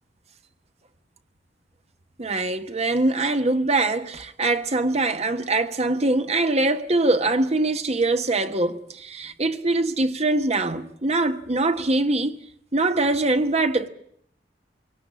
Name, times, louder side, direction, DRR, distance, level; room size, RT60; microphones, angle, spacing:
voice 1, 2.2-12.4 12.7-13.9, right 2 dB, 40° right, 1.3 m, -23 dB
23.5 x 18.5 x 8.6 m
head